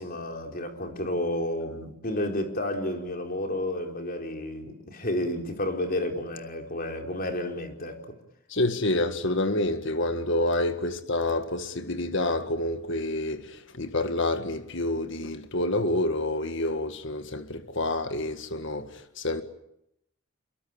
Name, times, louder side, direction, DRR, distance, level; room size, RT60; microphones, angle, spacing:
voice 1, 0.0-8.0, left 1 dB, 45° left, 4.4 m, -31 dB
voice 2, 8.5-19.4, left 2 dB, 60° left, 1.8 m, -28 dB
27.5 x 23.0 x 8.7 m
head